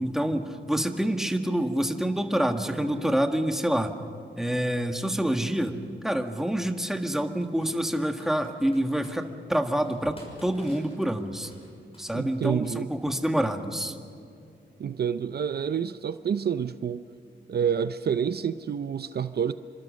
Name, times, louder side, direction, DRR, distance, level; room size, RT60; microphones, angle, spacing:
voice 1, 0.0-3.9 4.4-11.5 12.0-14.0, right 1 dB, ahead, 5 dB, 1.6 m, -27 dB
Computer keyboard, 6.3-6.5 7.4-9.2 9.8-12.5, left 1 dB, 30° left, 6.4 m, -51 dB
voice 2, 12.1-12.9 14.8-17.0 17.5-19.5, right 7 dB, 60° right, 12 dB, 0.6 m, -28 dB
27.5 x 25.0 x 6.4 m, 2.5 s
wide cardioid pair, 125°, 19 cm